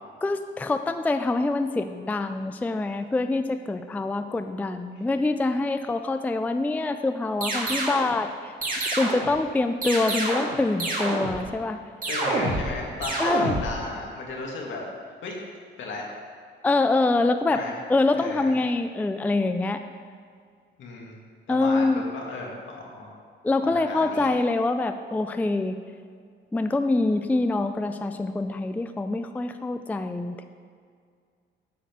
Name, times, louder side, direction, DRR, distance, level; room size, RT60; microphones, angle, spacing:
voice 1, 0.2-8.5 9.0-11.8 13.2-13.5 16.6-17.6 17.9-19.8 21.5-22.0 23.4-25.8 26.5-30.4, left 2 dB, 10° left, 8 dB, 0.3 m, -25 dB
sound 1, 7.4-8.1 8.6-9.3 9.8-10.5 10.8-11.4 12.0-12.7 13.0-13.7, right 2 dB, 45° right, 2.2 m, -27 dB
voice 2, 12.1-14.9 15.2-15.4 15.8-16.1 17.5-17.8 18.1-18.5 20.8-21.2 21.5-21.9 22.1-23.1 23.6-24.3, left 3 dB, 70° left, -1 dB, 2.0 m, -35 dB
9.0 x 4.3 x 6.7 m, 2.1 s
cardioid pair, 90°, 20 cm